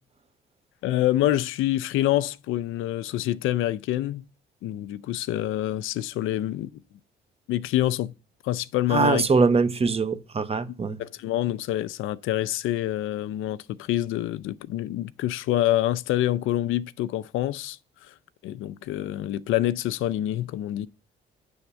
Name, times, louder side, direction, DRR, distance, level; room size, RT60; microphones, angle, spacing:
voice 1, 0.8-4.2 4.6-6.7 7.5-8.1 8.4-9.3 11.0-17.8 18.1-18.2 18.4-20.9, left 13 dB, 85° left, 0.5 m, -26 dB
voice 2, 8.9-11.0, right 4 dB, 30° right, 0.8 m, -22 dB
9.0 x 3.5 x 6.9 m
cardioid pair, 90°, 20 cm